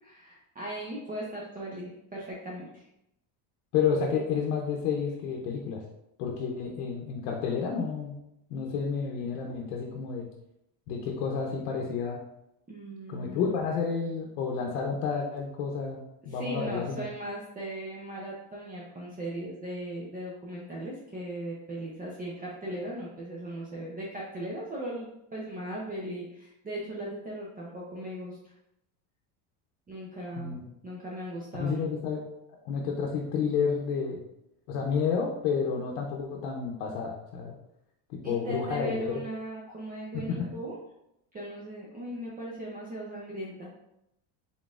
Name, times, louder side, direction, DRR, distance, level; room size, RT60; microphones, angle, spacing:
voice 1, 0.0-2.8 12.7-13.6 16.3-28.5 29.9-31.9 38.2-40.8 41.3-43.7, right 1 dB, 20° right, -5 dB, 0.6 m, -38 dB
voice 2, 3.7-5.8 6.2-8.1 8.5-10.3 10.9-12.2 13.1-17.0 30.4-30.7 31.5-32.2 32.6-34.2 34.7-37.5 38.1-39.2 40.1-40.5, left 6 dB, 90° left, 0 dB, 0.7 m, -30 dB
3.9 x 3.8 x 2.4 m, 0.84 s
cardioid pair, 120°, 46 cm